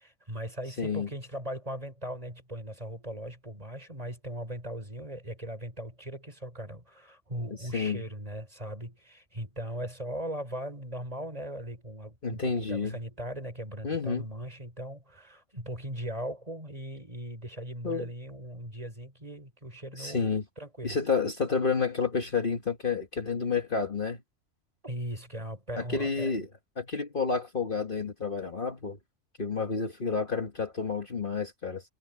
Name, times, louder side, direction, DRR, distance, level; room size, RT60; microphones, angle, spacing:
voice 1, 0.0-20.3 20.6-21.0 24.8-26.3, equal, 25° right, 5.4 m, -39 dB
voice 2, 0.8-1.1 7.7-8.0 12.2-13.0 13.8-14.3 17.8-18.1 20.0-20.4 20.8-24.2 25.7-26.5 26.8-29.0 29.4-31.9, left 5 dB, 40° left, 1.8 m, -30 dB
omnidirectional pair, 1.4 m